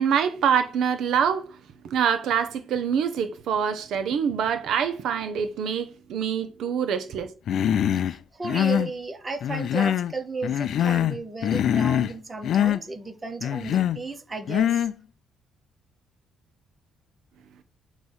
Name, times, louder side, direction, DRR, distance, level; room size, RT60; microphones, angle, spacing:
voice 1, 0.0-1.5 1.8-7.3, right 7 dB, 65° right, 0.7 m, -25 dB
Human voice, 7.5-8.1 8.4-8.9 9.4-10.1 10.4-11.2 11.4-12.1 12.4-12.8 13.4-14.0 14.5-14.9, left 10 dB, 55° left, 0.4 m, -23 dB
voice 2, 7.9-14.9, right 3 dB, 20° right, 0.7 m, -34 dB
7.8 x 3.0 x 5.5 m
cardioid pair, 155°, 0 cm